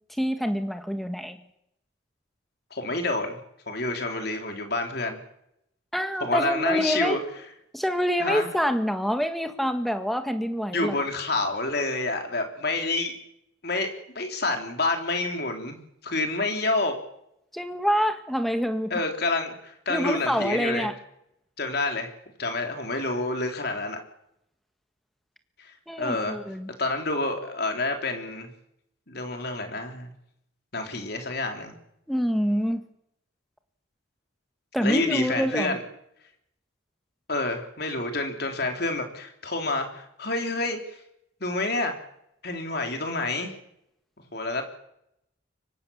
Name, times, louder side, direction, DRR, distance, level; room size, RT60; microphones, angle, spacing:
voice 1, 0.1-1.4 5.9-7.2 7.7-11.0 17.5-18.9 19.9-20.9 25.9-26.7 32.1-32.8 34.7-35.8, equal, ahead, 7 dB, 1.7 m, -26 dB
voice 2, 2.7-3.4 3.7-5.2 6.2-7.2 8.2-8.5 10.7-13.2 13.6-15.8 16.0-16.9 18.9-20.9 21.6-22.1 22.4-24.0 25.6-26.4 26.8-28.5 29.1-30.1 30.7-31.8 34.8-35.8 37.3-41.0 41.4-41.9 42.4-43.5 44.3-44.7, left 2 dB, 55° left, 4 dB, 3.9 m, -28 dB
24.5 x 23.0 x 7.3 m, 0.78 s
head